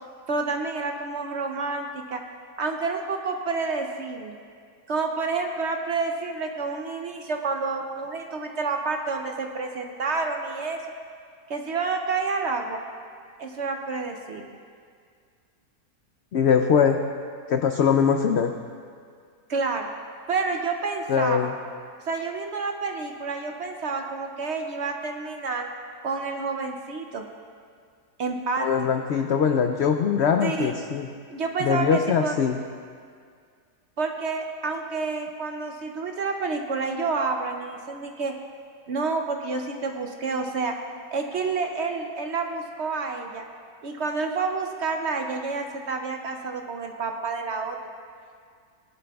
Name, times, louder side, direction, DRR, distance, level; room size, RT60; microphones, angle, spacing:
voice 1, 0.3-2.2 2.6-4.4 4.9-10.8 11.5-12.8 13.4-14.6 19.5-19.9 20.3-21.5 22.1-25.7 26.0-27.3 28.2-28.7 30.4-30.8 31.3-32.3 34.0-38.3 38.9-40.8 41.1-43.5 43.8-47.8, right 4 dB, 60° right, 3 dB, 0.8 m, -29 dB
voice 2, 16.3-17.0 17.5-18.5 21.1-21.5 28.6-31.1 31.6-32.6, left 7 dB, 75° left, 5 dB, 0.6 m, -22 dB
19.0 x 11.0 x 2.3 m, 2.1 s
omnidirectional pair, 1.7 m